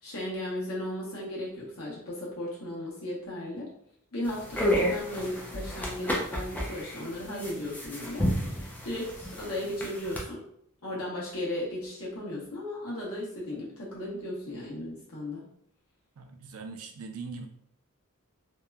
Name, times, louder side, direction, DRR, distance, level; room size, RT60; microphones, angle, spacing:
voice 1, 0.0-3.7 4.1-10.4 10.8-15.4, left 1 dB, 75° left, -5 dB, 1.0 m, -36 dB
sound 1, 4.3-10.2, equal, 10° left, 0.4 m, -31 dB
voice 2, 16.2-17.5, right 4 dB, 70° right, 5 dB, 0.4 m, -41 dB
2.8 x 2.1 x 2.3 m, 0.69 s
head